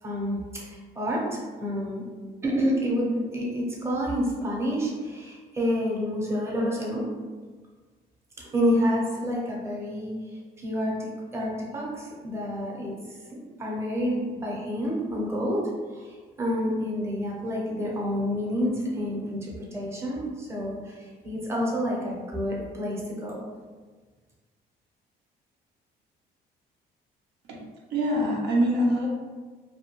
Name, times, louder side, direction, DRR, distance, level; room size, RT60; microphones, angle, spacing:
voice 1, 0.0-2.0 2.4-7.0 8.4-10.1 10.6-12.9 13.3-15.6 15.9-23.4, equal, 15° right, -3 dB, 0.7 m, -29 dB
voice 2, 27.9-29.1, equal, 85° right, -2 dB, 0.6 m, -24 dB
2.3 x 2.1 x 2.9 m, 1.4 s
cardioid pair, 110°, 17 cm